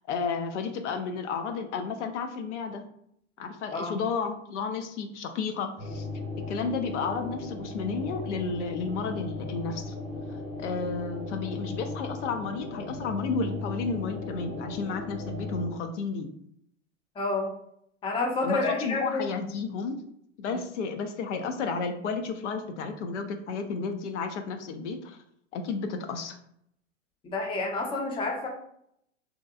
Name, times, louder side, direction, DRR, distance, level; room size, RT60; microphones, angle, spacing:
voice 1, 0.1-2.8 3.4-6.1 6.5-9.9 10.6-16.3 18.4-20.0 20.4-25.2 25.5-26.4, left 5 dB, 70° left, 6 dB, 0.5 m, -32 dB
sound 1, 5.8-15.7, left 2 dB, 20° right, 0.9 m, -37 dB
voice 2, 17.2-17.5 18.0-19.2 20.5-20.6 27.2-28.5, left 3 dB, 15° left, -1 dB, 0.5 m, -29 dB
2.7 x 2.2 x 2.3 m, 0.72 s
hypercardioid pair, 100°, 37 cm